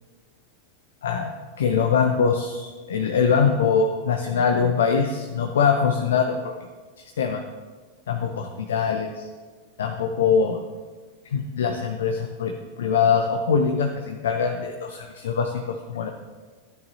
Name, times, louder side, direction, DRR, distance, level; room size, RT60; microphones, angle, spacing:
voice 1, 1.0-1.3 1.6-6.4 7.0-7.4 8.1-9.3 9.8-10.6 11.2-16.1, left 6 dB, 65° left, 5 dB, 0.7 m, -23 dB
13.0 x 9.6 x 2.8 m, 1.4 s
figure-of-eight pair, 90°, 0 cm